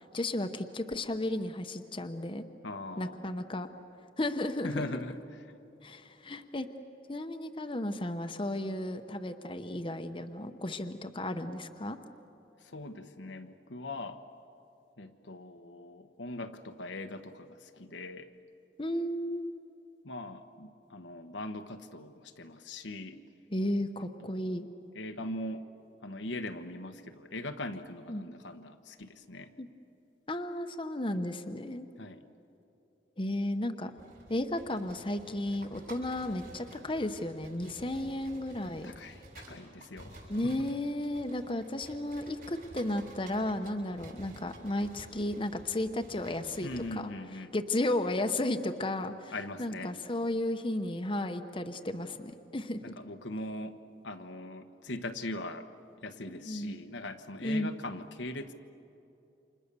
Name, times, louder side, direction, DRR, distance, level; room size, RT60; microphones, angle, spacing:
voice 1, 0.0-2.4 3.0-3.7 4.2-4.9 5.8-6.7 7.1-12.0 18.8-19.5 23.5-24.7 28.1-28.3 29.6-29.7 30.3-31.9 33.2-33.9 34.3-38.9 40.3-47.1 47.5-49.3 49.6-52.9 56.5-56.7 57.4-57.7, left 1 dB, 30° left, 7 dB, 0.9 m, -34 dB
voice 2, 2.6-3.2 4.6-5.5 12.6-14.2 15.0-18.3 20.0-23.2 24.2-24.6 24.9-25.7 26.0-29.5 32.0-32.2 38.8-40.7 46.6-47.5 49.3-49.9 52.8-53.8 54.0-55.7 56.0-58.5, left 1 dB, 85° left, 6 dB, 1.2 m, -41 dB
sound 1, 34.0-47.0, right 1 dB, 55° right, 7.6 m, -52 dB
29.0 x 27.0 x 6.9 m, 2.9 s
head